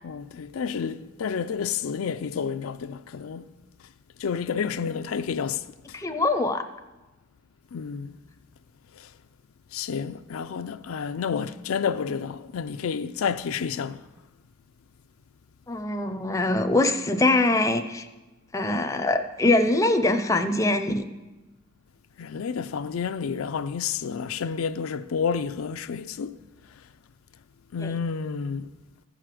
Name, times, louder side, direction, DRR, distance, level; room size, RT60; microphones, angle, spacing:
voice 1, 0.0-3.5 4.2-5.6 7.7-8.1 8.9-9.1 9.7-14.0 22.2-26.4 27.7-28.7, left 6 dB, 80° left, 0.4 m, -30 dB
voice 2, 5.9-6.6 15.7-18.1 18.5-21.1 27.8-27.9, left 2 dB, 15° left, 0.5 m, -23 dB
15.0 x 5.0 x 7.5 m
head